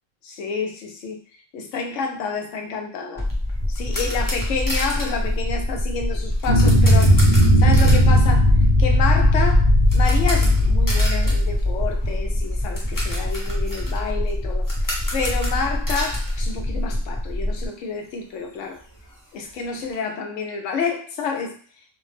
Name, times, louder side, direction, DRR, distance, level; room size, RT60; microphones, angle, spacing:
voice 1, 0.2-1.2 1.5-3.3 3.7-8.5 8.8-14.7 15.1-18.8 19.3-21.6, left 5 dB, 70° left, 3 dB, 0.9 m, -29 dB
sound 1, 3.2-17.7, left 1 dB, ahead, 0.9 m, -26 dB
sound 2, 3.3-17.2 17.5-17.6 18.1-18.2 18.4-19.9, equal, 30° left, 0.4 m, -34 dB
sound 3, 6.5-12.2, equal, 35° right, 0.5 m, -17 dB
2.5 x 2.2 x 3.2 m, 0.43 s
omnidirectional pair, 1.4 m